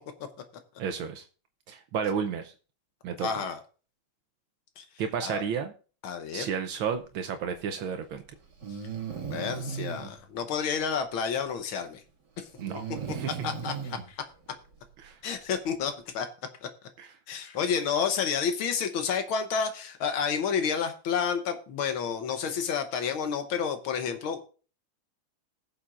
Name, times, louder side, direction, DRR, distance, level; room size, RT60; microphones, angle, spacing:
voice 1, 0.8-1.2 1.7-2.5 3.0-3.3 5.0-5.7 6.3-8.2 12.6-13.4 15.0-15.2 17.0-17.1, right 7 dB, 75° right, 7 dB, 1.6 m, -32 dB
voice 2, 3.2-3.6 4.8-4.9 5.2-5.4 6.0-6.5 9.3-12.0 12.4-12.5 13.4-14.2 15.2-16.3 16.6-16.7 17.3-24.4, left 6 dB, 80° left, 7 dB, 1.8 m, -30 dB
Breathing, 7.7-7.8 8.6-10.1 12.6-14.0, right 6 dB, 55° right, 2.6 m, -36 dB
20.0 x 7.1 x 2.5 m, 0.38 s
omnidirectional pair, 2.3 m